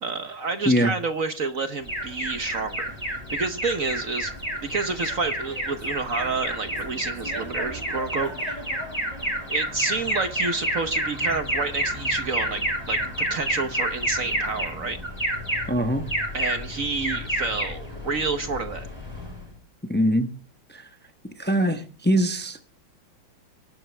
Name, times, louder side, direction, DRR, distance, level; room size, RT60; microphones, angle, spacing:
voice 1, 0.0-4.3 4.6-8.6 9.5-15.0 16.3-18.9, right 4 dB, 50° right, 9 dB, 1.2 m, -29 dB
Alarm, 1.9-19.5, right 1 dB, 10° right, 6.5 m, -29 dB
voice 2, 15.7-16.0 19.9-20.3 20.7-20.9 21.4-22.7, equal, 15° left, 8 dB, 0.4 m, -22 dB
23.5 x 12.5 x 3.4 m, 0.40 s
omnidirectional pair, 2.3 m